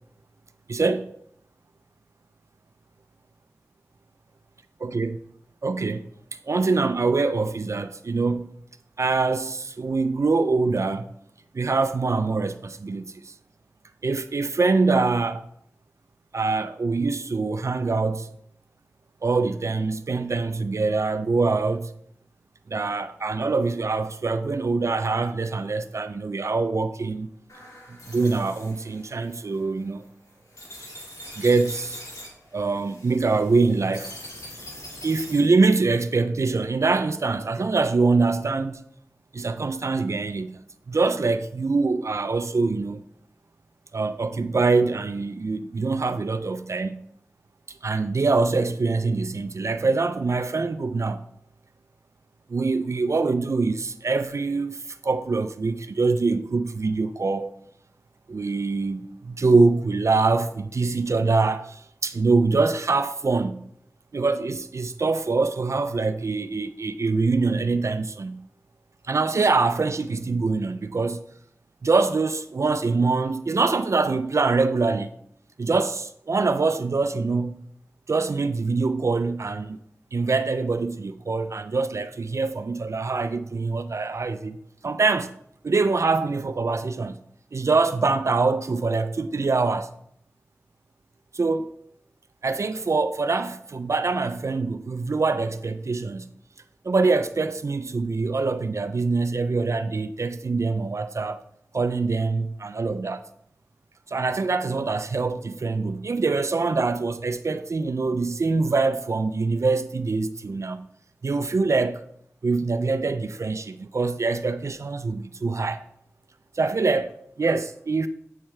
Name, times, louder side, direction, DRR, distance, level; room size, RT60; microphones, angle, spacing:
voice 1, 0.7-1.1 4.8-5.2 5.6-6.0 6.5-8.5 9.0-11.1 11.5-13.3 14.0-15.5 16.3-18.3 19.2-21.9 22.7-27.3 28.1-30.0 31.4-32.0 32.5-34.1 35.0-38.8 39.3-40.6 40.9-43.0 43.9-47.0 47.8-51.2 52.5-57.5 58.3-63.6 64.1-68.4 69.1-71.2 71.8-75.1 75.6-77.6 78.1-79.8 80.1-84.6 84.8-85.3 85.6-87.2 87.5-89.9 91.3-91.7 92.4-96.3 96.8-101.4 101.7-103.2 104.1-110.8 111.2-112.0 112.4-115.8 116.6-118.1, right 3 dB, 65° right, 0.4 m, -24 dB
sound 1, 27.5-35.6, left 1 dB, 75° left, 2.4 m, -43 dB
8.8 x 5.6 x 3.2 m
cardioid pair, 40°, 5 cm